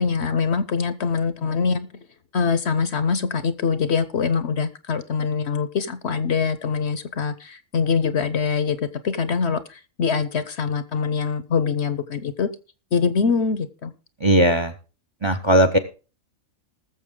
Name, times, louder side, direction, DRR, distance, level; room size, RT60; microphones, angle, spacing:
voice 1, 0.0-1.9 2.3-12.5 12.9-13.9, left 5 dB, 55° left, 13 dB, 0.9 m, -24 dB
voice 2, 14.2-14.7 15.2-15.8, right 1 dB, 25° right, 10 dB, 0.7 m, -17 dB
20.0 x 7.0 x 3.7 m, 0.33 s
omnidirectional pair, 1.5 m